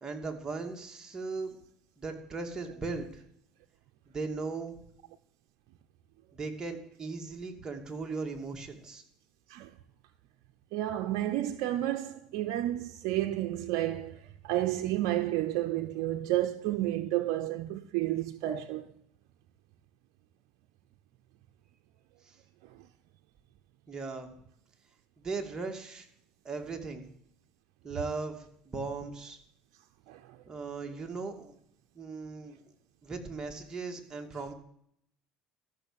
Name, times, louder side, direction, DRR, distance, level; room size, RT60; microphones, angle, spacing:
voice 1, 0.0-1.6 2.0-3.2 4.1-4.8 6.3-9.0 22.2-22.4 23.9-24.3 25.2-26.1 26.4-27.0 27.8-29.4 30.5-31.5 31.9-32.7 33.0-34.5, right 4 dB, 25° right, 2.6 m, -38 dB
voice 2, 10.7-18.9 30.1-30.2, right 14 dB, 75° right, 0.7 m, -31 dB
13.5 x 6.5 x 8.7 m
supercardioid pair, 95°, 3 cm